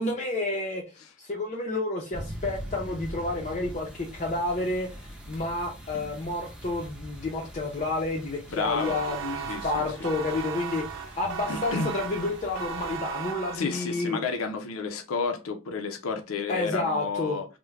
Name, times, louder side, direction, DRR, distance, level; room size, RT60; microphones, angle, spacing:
voice 1, 0.0-0.8 1.2-14.2 16.5-17.4, left 2 dB, 35° left, 0.5 m, -30 dB
sound 1, 2.1-13.0, equal, 5° right, 0.8 m, -43 dB
voice 2, 8.5-9.0 9.5-9.9 11.5-11.9 13.5-17.5, left 4 dB, 80° left, 0.5 m, -31 dB
sound 2, 8.8-14.0, right 8 dB, 70° right, 0.5 m, -36 dB
3.5 x 2.1 x 3.2 m
head